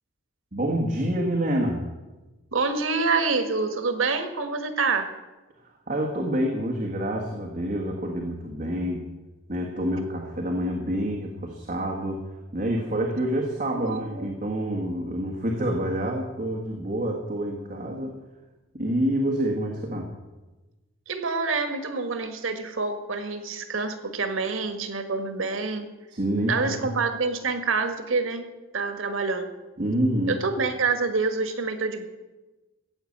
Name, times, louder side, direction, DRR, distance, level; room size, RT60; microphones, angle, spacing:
voice 1, 0.5-1.8 5.6-9.0 9.5-12.2 12.5-18.2 18.7-20.1 26.1-26.9 29.8-30.4, right 1 dB, 40° right, 0 dB, 1.6 m, -27 dB
voice 2, 2.5-5.1 13.7-14.3 21.1-25.9 26.5-28.5 28.7-29.5 30.3-32.1, right 4 dB, 90° right, 8 dB, 1.5 m, -27 dB
15.0 x 8.1 x 8.6 m, 1.1 s
head